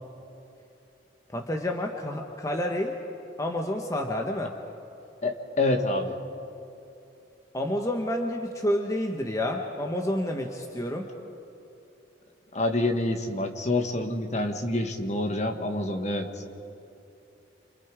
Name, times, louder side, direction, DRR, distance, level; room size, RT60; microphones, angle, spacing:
voice 1, 1.3-3.0 3.4-4.5 7.5-11.1, left 1 dB, 15° left, 2 dB, 1.2 m, -29 dB
voice 2, 5.2-6.2 12.5-16.3, left 2 dB, 40° left, 5 dB, 1.7 m, -27 dB
29.0 x 26.5 x 5.0 m, 2.8 s
head